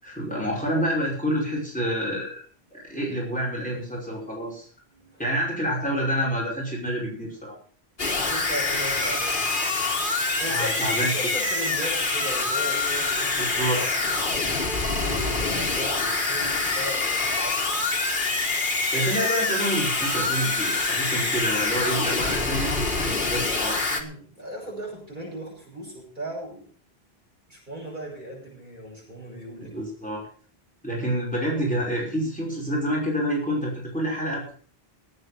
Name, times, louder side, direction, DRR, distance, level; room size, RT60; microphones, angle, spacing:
voice 1, 0.0-2.4 2.7-4.7 5.2-7.6 10.4-11.1 13.4-13.8 18.9-23.9 29.6-30.2 30.8-34.5, equal, 5° left, -4 dB, 5.5 m, -28 dB
voice 2, 4.9-5.2 8.1-9.5 10.2-14.5 14.8-17.7 23.9-26.7 27.5-29.8, equal, 50° right, -3 dB, 7.5 m, -37 dB
sound 1, 8.0-24.0, left 3 dB, 55° left, 1.9 m, -25 dB
18.5 x 8.9 x 5.8 m, 0.43 s
omnidirectional pair, 1.0 m